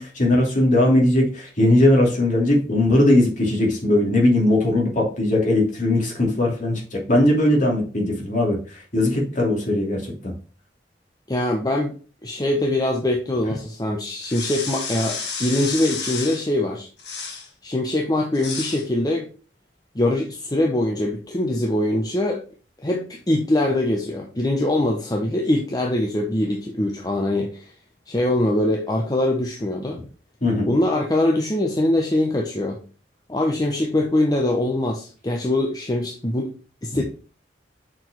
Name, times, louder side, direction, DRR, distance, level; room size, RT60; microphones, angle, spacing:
voice 1, 0.0-10.3 30.4-30.7, left 1 dB, 45° left, -2 dB, 2.7 m, -19 dB
voice 2, 11.3-11.9 12.2-16.9 17.6-19.3 19.9-22.4 22.8-27.7 28.1-30.0 30.7-32.8 33.3-36.5 36.8-37.0, left 1 dB, 20° left, 1 dB, 0.8 m, -23 dB
sound 1, 14.2-16.5 17.0-17.5 18.3-18.8, left 5 dB, 75° left, 2.0 m, -31 dB
6.2 x 4.6 x 4.6 m, 0.38 s
head